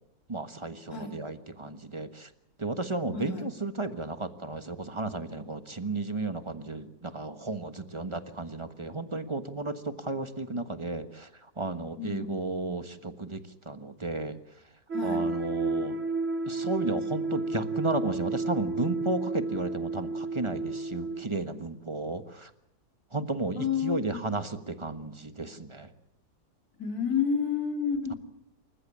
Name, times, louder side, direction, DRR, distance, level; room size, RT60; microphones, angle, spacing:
voice 1, 0.3-2.3 2.6-13.4 13.6-14.4 15.0-16.0 16.5-22.5 23.1-25.9, right 2 dB, 20° right, 9 dB, 1.2 m, -33 dB
voice 2, 3.1-3.5 12.0-12.3 14.9-15.2 23.5-24.3 26.8-28.2, left 7 dB, 60° left, 3 dB, 3.8 m, -30 dB
sound 1, 14.9-21.2, right 3 dB, 45° right, 2.2 m, -31 dB
27.5 x 15.0 x 8.7 m, 0.81 s
omnidirectional pair, 1.8 m